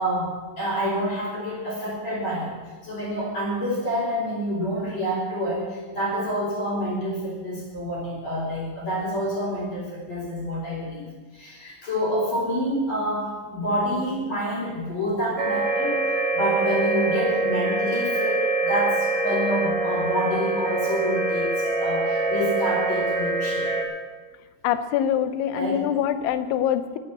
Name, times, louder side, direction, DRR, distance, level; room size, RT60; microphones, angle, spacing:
voice 1, 0.0-2.5 2.8-23.7 25.5-25.9, equal, 30° left, -9 dB, 4.6 m, -28 dB
sound 1, 15.4-23.8, right 2 dB, 50° right, 1.1 m, -24 dB
voice 2, 24.6-27.0, left 10 dB, 80° left, 11 dB, 3.2 m, -24 dB
12.5 x 10.0 x 9.0 m, 1.4 s
omnidirectional pair, 5.4 m